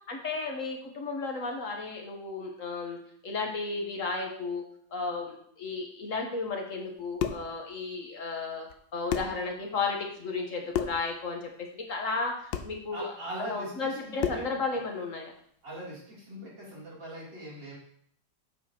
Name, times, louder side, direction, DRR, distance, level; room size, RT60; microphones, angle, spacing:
voice 1, 0.1-3.0 3.2-4.6 4.9-15.3, left 4 dB, 50° left, 1 dB, 1.3 m, -34 dB
sound 1, 6.9-7.5 8.7-8.8 9.1-9.4 10.7-11.1 12.5-12.8 14.2-14.5, left 9 dB, 85° left, 1.3 m, -31 dB
voice 2, 12.9-14.5 15.6-17.7, right 1 dB, 85° right, -6 dB, 3.9 m, -41 dB
8.8 x 7.7 x 2.9 m, 0.64 s
omnidirectional pair, 1.9 m